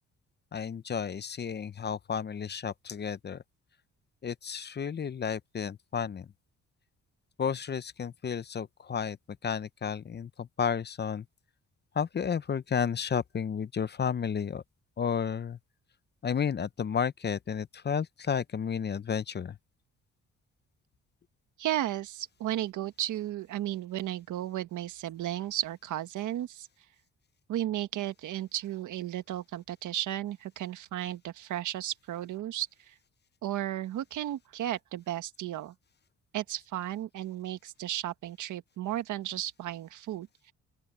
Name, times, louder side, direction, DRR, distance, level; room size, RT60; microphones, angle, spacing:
voice 1, 0.5-3.4 4.2-6.3 7.4-9.2 9.4-11.2 11.9-14.6 15.0-15.6 16.2-19.6, left 7 dB, 35° left, 0.7 m, -32 dB
voice 2, 21.6-26.7 27.5-32.9 33.4-35.7 36.3-40.5, right 13 dB, 75° right, 1.6 m, -34 dB
open air
cardioid pair, 90°, 30 cm